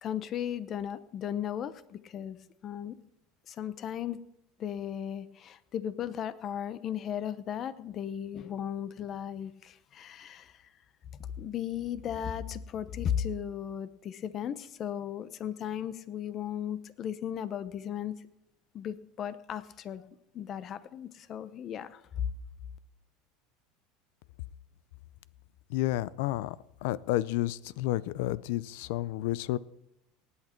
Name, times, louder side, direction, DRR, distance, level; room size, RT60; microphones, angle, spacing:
voice 1, 0.0-2.4 2.6-3.0 3.5-4.2 4.6-10.6 11.4-18.1 18.7-20.0 20.3-22.3, left 9 dB, 40° left, 15 dB, 0.9 m, -36 dB
voice 2, 25.7-26.6 26.8-29.6, left 15 dB, 75° left, 20 dB, 0.5 m, -30 dB
18.5 x 8.4 x 4.6 m, 0.80 s
supercardioid pair, 130°, 0 cm